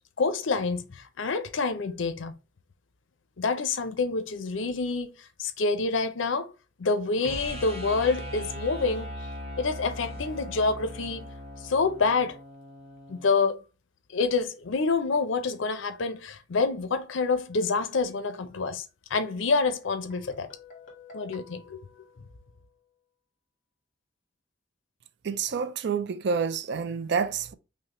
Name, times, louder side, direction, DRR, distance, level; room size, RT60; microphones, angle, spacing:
voice 1, 0.2-2.3 3.4-6.5 6.8-9.1 9.6-11.2 11.6-12.4 13.1-13.6 14.1-18.8 19.1-20.5 21.1-21.8, left 4 dB, 75° left, 0.6 m, -27 dB
sound 1, 7.2-13.3, equal, 30° right, 0.8 m, -39 dB
Guitar, 20.1-22.9, left 5 dB, 45° left, 1.6 m, -51 dB
voice 2, 25.2-27.5, right 5 dB, 60° right, 0.4 m, -28 dB
5.4 x 2.1 x 2.9 m
head